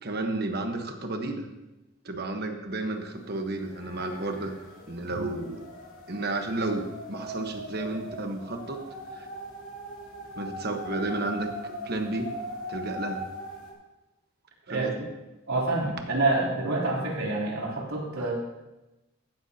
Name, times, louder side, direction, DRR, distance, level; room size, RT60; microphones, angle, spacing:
voice 1, 0.0-1.5 2.0-4.5 4.9-5.6 6.1-8.8 9.1-9.3 10.3-12.3 12.7-13.2 14.7-15.1, right 2 dB, 50° right, 5 dB, 1.3 m, -32 dB
sound 1, 3.1-3.2 3.5-13.7, equal, 80° left, 2.8 m, -40 dB
voice 2, 15.5-18.3, right 2 dB, 80° right, -3 dB, 3.4 m, -27 dB
15.5 x 12.5 x 2.9 m, 1.0 s
head